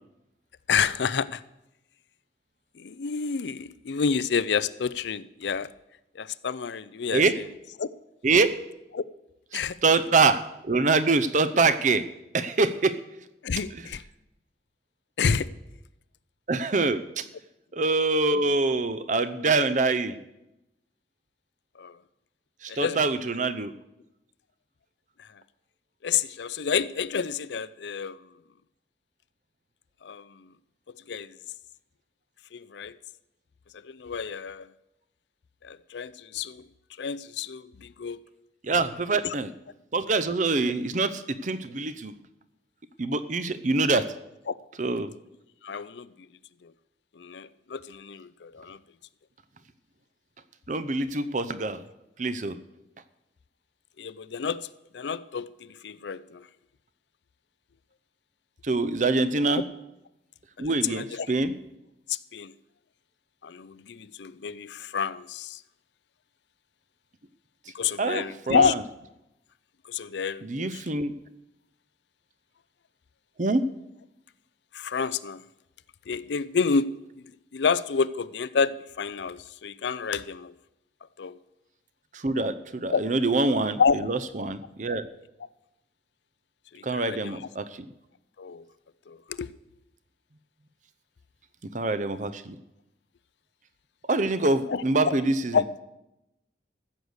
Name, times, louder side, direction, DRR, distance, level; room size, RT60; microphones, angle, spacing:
voice 1, 0.7-1.4 2.8-5.7 6.1-7.4 7.8-7.9 8.9-9.0 9.5-9.8 13.4-14.0 15.2-15.5 21.8-22.0 22.7-23.0 25.2-25.3 26.0-28.3 30.0-30.4 31.1-31.4 32.5-33.0 33.8-34.7 35.6-36.7 37.0-38.2 39.2-39.3 45.6-46.1 46.6-46.7 47.2-48.8 54.0-54.7 54.9-56.5 60.6-61.3 62.1-62.5 63.4-65.6 67.7-68.7 69.9-70.8 74.7-75.4 76.1-76.9 77.2-80.5 81.2-81.4 82.9-83.0 83.8-84.0 86.7-87.4 88.4-88.6 89.1-89.5 94.7-95.1 95.5-95.6, left 6 dB, 70° left, 0.5 m, -29 dB
voice 2, 8.2-8.6 9.8-12.1 12.3-13.0 16.5-17.3 17.7-20.2 22.6-23.7 38.6-39.5 39.9-42.1 43.0-44.1 44.8-45.1 50.7-51.8 52.2-52.6 58.6-59.6 60.6-61.5 68.0-68.8 70.4-71.1 73.4-73.7 82.1-85.1 86.8-87.8 91.6-92.6 94.1-95.6, right 3 dB, 40° right, 0.7 m, -25 dB
14.5 x 6.6 x 8.0 m
head